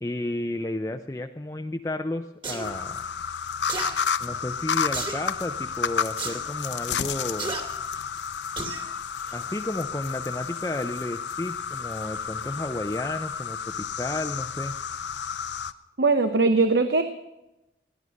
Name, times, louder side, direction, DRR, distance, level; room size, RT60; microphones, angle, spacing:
voice 1, 0.0-3.0 4.2-7.6 9.3-14.7, left 1 dB, 15° left, 5 dB, 0.5 m, -32 dB
sound 1, 2.4-2.7 3.7-3.9 4.9-5.2 6.2-6.4 7.4-7.6 8.6-8.8 9.3-9.4, right 3 dB, 30° right, 2.2 m, -32 dB
sound 2, 2.6-15.7, left 7 dB, 85° left, 0.7 m, -31 dB
voice 2, 16.0-17.0, right 3 dB, 75° right, 8 dB, 0.9 m, -20 dB
17.5 x 11.0 x 6.4 m, 0.92 s
head